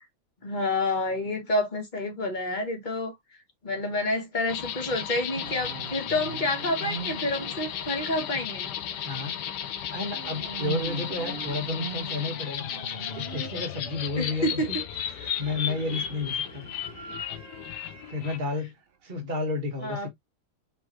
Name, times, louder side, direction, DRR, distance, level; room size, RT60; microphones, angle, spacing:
voice 1, 0.4-3.2 3.6-8.7 14.2-14.8 19.8-20.1, left 2 dB, 30° left, 1.4 m, -29 dB
sound 1, 4.5-18.4, left 9 dB, 80° left, 1.3 m, -34 dB
sound 2, 5.3-9.7 10.0-13.6 14.7-18.4, right 7 dB, 60° right, 0.6 m, -42 dB
voice 2, 9.0-9.3 9.9-12.7 13.2-14.8 15.2-16.6 18.1-18.7 19.0-20.1, left 3 dB, 30° right, 1.6 m, -31 dB
5.4 x 3.0 x 3.0 m
omnidirectional pair, 1.8 m